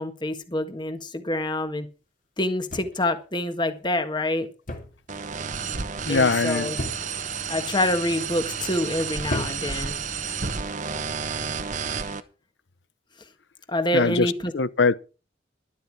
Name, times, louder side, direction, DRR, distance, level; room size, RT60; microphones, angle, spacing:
voice 1, 0.0-1.9 2.4-4.5 6.1-6.8 7.5-10.0 13.7-14.5, left 1 dB, 25° left, 1.6 m, -26 dB
sound 1, 2.7-3.2 4.7-5.1 5.3-5.8 6.8-7.3 8.0-8.4 9.2-9.9 10.8-11.1, left 1 dB, 50° left, 2.7 m, -34 dB
sound 2, 5.1-12.2, right 6 dB, 45° right, 1.1 m, -31 dB
voice 2, 6.1-6.7 13.9-14.9, left 4 dB, 75° left, 0.8 m, -22 dB
12.5 x 12.0 x 4.8 m
head